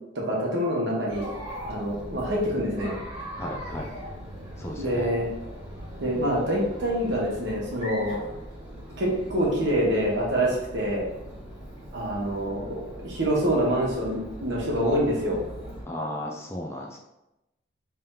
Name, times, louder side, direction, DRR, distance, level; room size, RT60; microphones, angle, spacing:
voice 1, 0.1-1.3 1.6-2.9 4.8-5.3 6.0-8.2 9.0-11.1 11.9-15.4, equal, 65° right, -3 dB, 1.2 m, -26 dB
Chatter, 1.1-15.8, equal, 30° right, 1.3 m, -40 dB
voice 2, 3.4-3.9 4.6-5.1 15.9-17.0, left 1 dB, 15° left, 0 dB, 0.3 m, -34 dB
3.4 x 2.8 x 3.7 m, 0.93 s
head